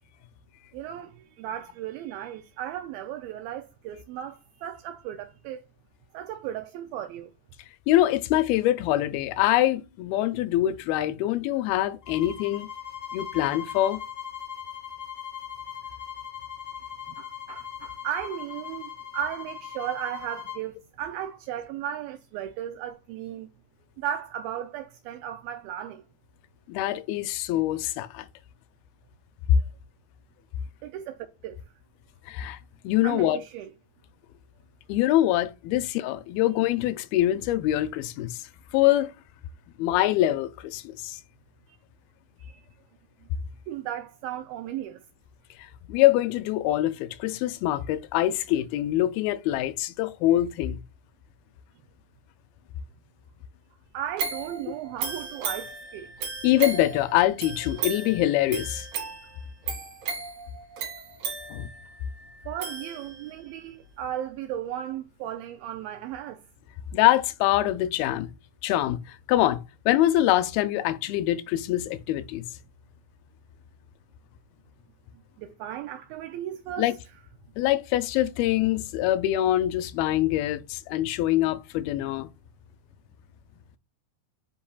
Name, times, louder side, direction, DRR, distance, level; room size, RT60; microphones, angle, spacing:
voice 1, 0.7-5.6 6.1-7.3 17.1-23.5 24.0-26.0 30.8-31.6 33.0-33.7 42.4-42.6 43.7-45.0 53.9-56.1 62.5-66.4 75.4-76.9, right 10 dB, 80° right, 2.3 m, -35 dB
voice 2, 7.9-12.7 13.1-14.0 26.7-28.3 32.3-32.6 32.8-33.4 34.9-38.5 38.7-39.1 39.8-41.2 45.6-50.8 56.4-58.9 61.5-61.7 66.9-68.3 68.6-72.5 76.8-76.9 77.6-82.3, left 14 dB, 85° left, 2.4 m, -24 dB
sound 1, 12.0-20.7, left 8 dB, 50° left, 1.4 m, -39 dB
sound 2, 54.2-63.4 63.9-64.0, right 5 dB, 55° right, 3.1 m, -36 dB
8.5 x 5.3 x 2.3 m
omnidirectional pair, 4.4 m